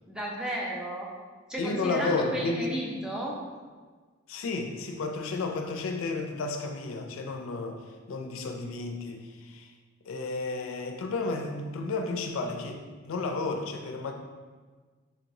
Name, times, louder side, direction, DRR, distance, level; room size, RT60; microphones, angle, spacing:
voice 1, 0.1-1.1 1.5-3.4, right 1 dB, 5° right, -3 dB, 0.5 m, -33 dB
voice 2, 1.6-2.7 4.3-7.8 8.1-9.7 10.0-14.1, left 3 dB, 70° left, 4 dB, 0.4 m, -32 dB
3.9 x 2.9 x 2.6 m, 1.4 s
head